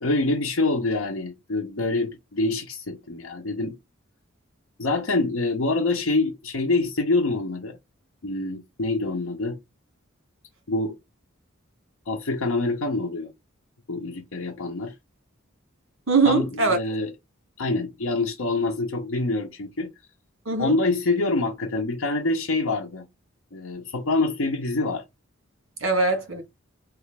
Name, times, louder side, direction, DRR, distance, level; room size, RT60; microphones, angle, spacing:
voice 1, 0.0-3.8 4.8-7.8 8.2-9.6 10.7-11.0 12.1-13.3 13.9-14.9 16.2-17.1 17.6-19.9 20.6-23.1 23.5-25.0, left 2 dB, 75° left, 0.7 m, -26 dB
voice 2, 16.1-16.8 20.4-20.8 25.8-26.4, right 4 dB, 75° right, 1.6 m, -21 dB
3.3 x 2.4 x 3.2 m
head